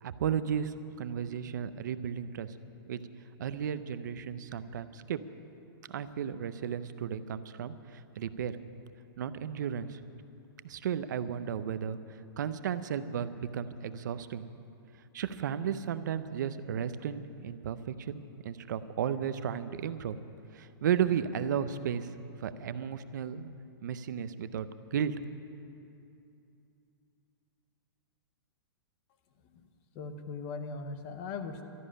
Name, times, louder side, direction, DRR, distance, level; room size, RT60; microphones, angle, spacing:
voice 1, 0.0-2.5 2.9-3.0 3.4-5.2 5.9-8.6 9.2-10.0 10.6-12.0 12.4-14.5 15.1-20.2 20.5-22.1 22.4-25.1, right 8 dB, 50° right, 12 dB, 0.6 m, -34 dB
voice 2, 29.9-31.6, left 4 dB, 25° left, 8 dB, 0.8 m, -39 dB
13.0 x 10.5 x 10.0 m, 2.7 s
hypercardioid pair, 180°, 13 cm